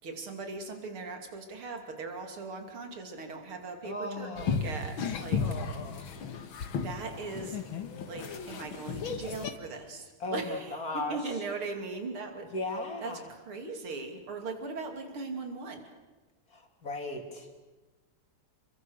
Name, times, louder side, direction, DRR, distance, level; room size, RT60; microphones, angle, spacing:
voice 1, 0.0-6.4 6.8-7.6 8.0-12.6 13.0-15.9, right 3 dB, 75° right, 5 dB, 3.6 m, -39 dB
voice 2, 3.8-4.5 10.2-11.2 12.5-13.2 16.5-17.5, left 2 dB, 40° left, 3 dB, 3.5 m, -36 dB
sound 1, 4.4-9.5, left 5 dB, 70° left, 2.3 m, -34 dB
28.5 x 23.5 x 6.5 m, 1.2 s
omnidirectional pair, 2.3 m